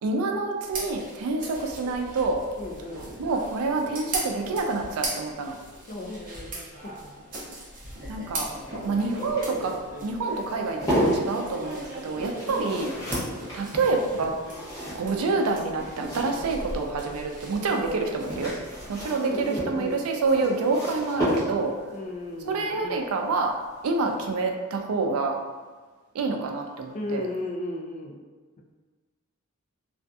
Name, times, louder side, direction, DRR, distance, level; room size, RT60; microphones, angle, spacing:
voice 1, 0.0-2.4 3.2-5.6 8.1-8.5 8.8-12.9 13.5-14.3 14.9-18.5 18.9-21.8 22.5-23.6 23.8-25.4 26.1-27.2, right 3 dB, 90° right, 3 dB, 0.4 m, -27 dB
sound 1, 0.6-19.0, right 1 dB, 40° right, 0.6 m, -39 dB
voice 2, 2.6-3.3 5.9-7.1 12.4-12.8 19.2-20.0 21.9-23.0 26.9-28.2, left 1 dB, 35° left, 0 dB, 0.4 m, -35 dB
sound 2, 8.0-16.8 18.0-21.9 23.5-23.8 24.1-24.2, equal, 15° left, 0.9 m, -33 dB
2.6 x 2.4 x 2.2 m, 1.3 s
head